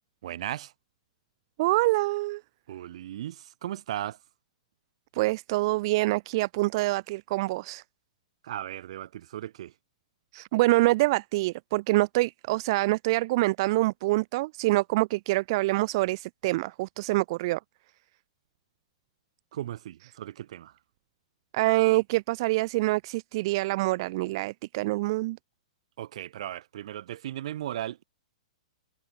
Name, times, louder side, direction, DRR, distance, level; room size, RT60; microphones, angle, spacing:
voice 1, 0.2-0.7 2.7-4.2 8.4-9.7 19.5-20.8 26.0-28.0, right 12 dB, 60° right, 4.9 m, -36 dB
voice 2, 1.6-2.4 5.1-7.8 10.3-17.6 21.5-25.4, right 20 dB, 45° right, 0.6 m, -25 dB
hypercardioid pair, 150°, 4 cm